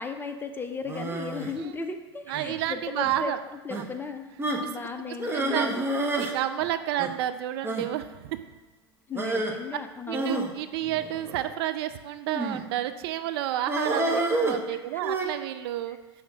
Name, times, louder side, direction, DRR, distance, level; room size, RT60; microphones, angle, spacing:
voice 1, 0.0-3.3 3.6-4.3 4.6-5.8 9.1-10.4 13.9-14.0 14.7-15.0 15.9-16.0, left 4 dB, 15° left, 6 dB, 0.6 m, -36 dB
sound 1, 0.9-1.5 2.3-2.7 3.0-3.2 3.7-3.8 4.4-4.7 5.2-6.4 6.6-6.7 7.0-7.1 7.6-7.9 9.1-9.5 10.1-11.5 12.3-12.7 13.7-15.3, right 2 dB, 15° right, 0.9 m, -29 dB
voice 2, 2.3-3.4 3.7-3.8 4.6-4.7 5.3-5.7 6.1-8.4 10.1-16.0, right 12 dB, 65° right, 11 dB, 0.4 m, -30 dB
5.9 x 3.6 x 6.0 m, 1.2 s
hypercardioid pair, 95°, 14 cm